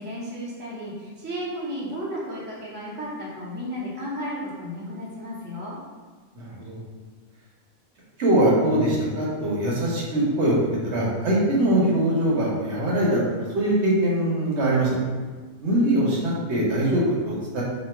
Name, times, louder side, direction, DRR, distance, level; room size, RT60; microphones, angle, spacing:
voice 1, 0.0-5.8, equal, 10° right, -7 dB, 0.6 m, -33 dB
voice 2, 6.4-6.8 8.2-10.5 10.8-13.2 13.5-15.0 15.6-17.6, right 1 dB, 60° right, -5 dB, 1.1 m, -22 dB
3.2 x 2.3 x 4.3 m, 1.4 s
omnidirectional pair, 1.4 m